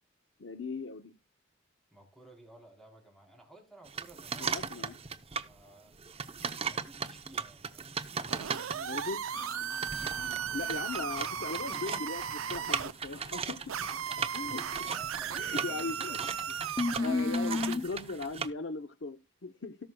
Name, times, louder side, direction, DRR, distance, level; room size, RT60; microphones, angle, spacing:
voice 1, 0.4-1.1 4.4-5.0 8.9-9.2 10.0-13.6 14.3-14.6 15.3-16.2 17.0-19.8, left 3 dB, 65° left, 0.7 m, -38 dB
voice 2, 1.9-6.0 6.7-9.1 13.8-14.3 14.9-16.5, right 1 dB, ahead, 3.9 m, -55 dB
sound 1, 3.8-5.5 5.9-18.5, right 6 dB, 30° right, 0.7 m, -38 dB
sound 2, 8.3-12.9 13.7-17.9, right 8 dB, 90° right, 0.6 m, -37 dB
sound 3, 9.3-12.7 15.5-15.9 16.2-16.3 16.8-17.8, left 3 dB, 20° left, 0.4 m, -36 dB
17.5 x 6.1 x 2.2 m
head